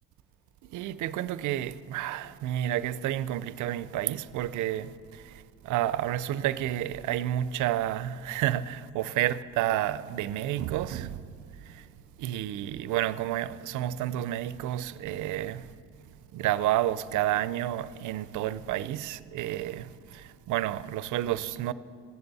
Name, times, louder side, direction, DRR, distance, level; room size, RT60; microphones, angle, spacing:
voice 1, 0.6-11.3 11.6-11.9 12.2-15.7 16.3-21.7, right 13 dB, 80° right, 0.5 m, -30 dB
15.0 x 10.5 x 4.0 m
cardioid pair, 90°, 30 cm